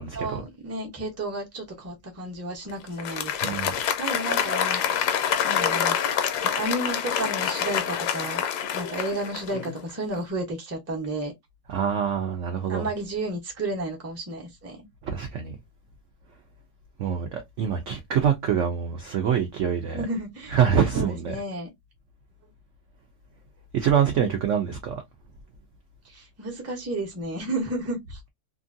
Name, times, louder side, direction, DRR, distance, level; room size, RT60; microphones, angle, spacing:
voice 1, 0.1-4.8 5.4-6.0 6.4-8.4 8.7-11.3 12.7-14.8 19.9-20.6 20.9-21.7 26.0-28.2, right 2 dB, 15° right, 0.5 m, -32 dB
Applause, 2.9-9.9, left 8 dB, 75° left, 1.1 m, -26 dB
voice 2, 3.4-3.7 11.7-12.9 15.0-15.5 17.0-20.0 20.5-21.4 23.7-25.0, right 8 dB, 75° right, 0.6 m, -25 dB
2.9 x 2.5 x 2.6 m
omnidirectional pair, 1.9 m